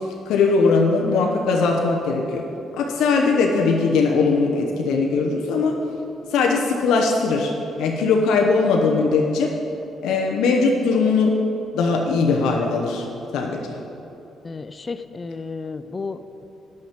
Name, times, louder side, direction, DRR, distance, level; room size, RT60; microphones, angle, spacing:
voice 1, 0.3-2.4 2.8-5.7 6.3-7.5 7.8-9.5 10.0-11.3 11.7-13.1 13.3-13.8, left 4 dB, 85° left, 0 dB, 0.9 m, -20 dB
voice 2, 14.4-16.4, left 4 dB, 30° left, 11 dB, 0.4 m, -33 dB
10.5 x 6.0 x 7.4 m, 2.9 s
cardioid pair, 90°, 0 cm